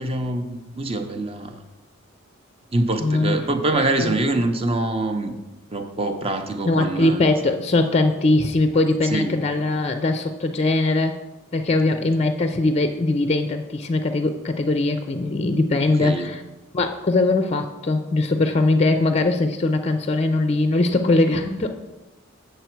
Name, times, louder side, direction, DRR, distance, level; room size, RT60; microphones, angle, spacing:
voice 1, 0.0-1.6 2.7-5.4 5.7-7.2 9.1-9.4 12.2-12.3 16.0-16.3, right 2 dB, 30° right, 7 dB, 0.6 m, -24 dB
voice 2, 3.0-3.3 3.7-4.1 6.7-11.2 11.5-16.4 16.7-21.8, left 2 dB, 30° left, 8 dB, 0.4 m, -21 dB
8.0 x 6.7 x 4.5 m, 1.1 s
head